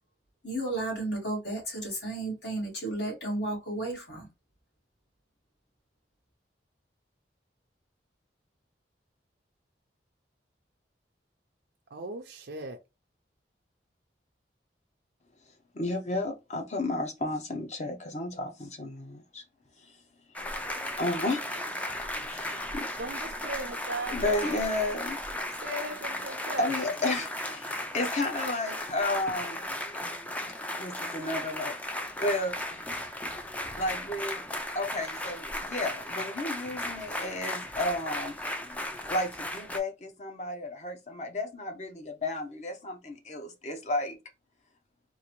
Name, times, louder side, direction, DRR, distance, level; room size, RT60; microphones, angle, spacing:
voice 1, 0.4-4.3, right 2 dB, 75° left, 2.2 m, -33 dB
voice 2, 11.9-12.8 23.0-24.6 25.6-26.7, right 2 dB, 65° right, 0.5 m, -37 dB
voice 3, 15.7-19.4 19.8-19.9 21.0-21.8 22.3-22.9 24.1-25.2 26.6-29.7 30.8-32.9 33.7-34.5 34.7-38.4 39.1-44.2, left 2 dB, 40° left, 0.7 m, -32 dB
sound 1, 20.4-39.8, left 1 dB, 10° left, 0.4 m, -36 dB
3.8 x 2.5 x 2.9 m
head